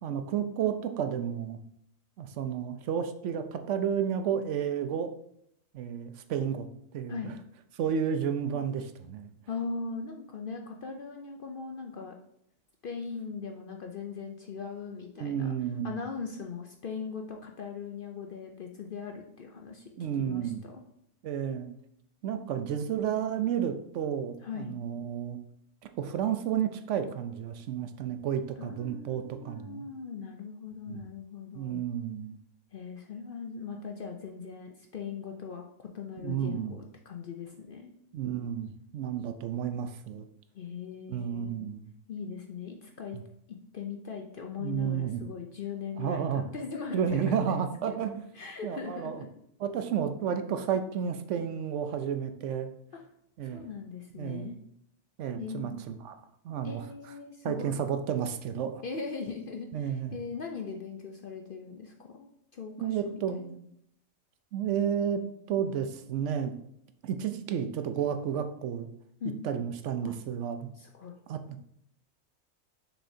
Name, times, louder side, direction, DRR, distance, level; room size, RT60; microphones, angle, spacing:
voice 1, 0.0-1.6 2.2-5.1 5.7-6.7 6.9-7.3 7.8-9.3 15.2-16.0 19.9-20.6 21.2-21.7 22.2-25.4 26.0-29.9 30.9-31.0 31.5-32.4 36.2-36.8 38.1-40.2 41.1-41.9 43.1-43.2 44.6-45.2 46.0-46.5 46.9-48.2 48.6-49.2 49.6-52.7 53.4-53.6 54.1-54.5 55.2-56.1 56.4-56.8 57.4-58.8 59.7-60.2 62.8-63.6 64.5-66.6 67.0-68.9 69.4-70.7 71.3-71.4, right 8 dB, 70° right, 8 dB, 0.9 m, -31 dB
voice 2, 9.5-12.1 12.8-15.5 15.8-19.9 20.2-20.8 24.4-24.7 28.6-31.8 32.7-37.9 40.5-41.6 42.1-43.2 43.5-47.5 47.9-48.0 48.3-49.3 53.4-54.6 55.4-55.8 56.6-57.8 58.8-63.6 69.2-69.4 70.0-70.1 70.8-71.2, left 5 dB, 55° left, 3 dB, 0.7 m, -40 dB
6.4 x 6.1 x 2.7 m, 0.73 s
omnidirectional pair, 1.4 m